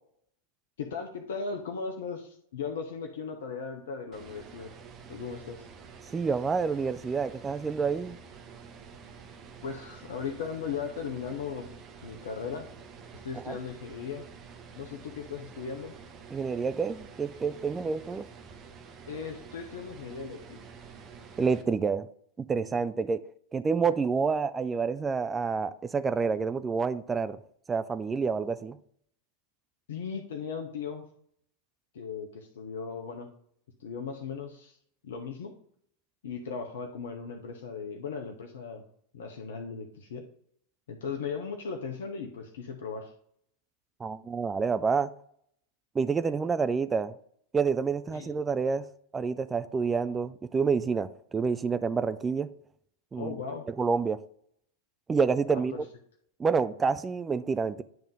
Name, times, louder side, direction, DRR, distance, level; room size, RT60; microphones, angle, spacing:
voice 1, 0.8-4.7 5.1-5.7 9.6-11.7 12.0-12.7 13.2-14.2 14.8-15.9 19.1-20.6 29.9-31.0 31.9-33.3 33.8-34.8 35.0-35.5 36.2-38.8 39.1-40.2 40.9-43.1 48.1-48.3 53.2-53.6 55.5-55.8, left 5 dB, 60° left, 0.8 m, -37 dB
sound 1, 4.1-21.6, right 5 dB, 30° right, 1.0 m, -49 dB
voice 2, 6.1-8.2 13.3-13.6 16.3-18.3 21.4-22.1 22.5-23.2 23.5-27.4 27.7-28.8 44.0-45.1 46.0-47.1 47.5-48.8 49.1-52.5 53.1-53.3 53.7-54.2 55.1-55.9 56.4-57.8, right 5 dB, 15° right, 0.3 m, -28 dB
9.2 x 3.6 x 5.2 m
figure-of-eight pair, 90°, 0 cm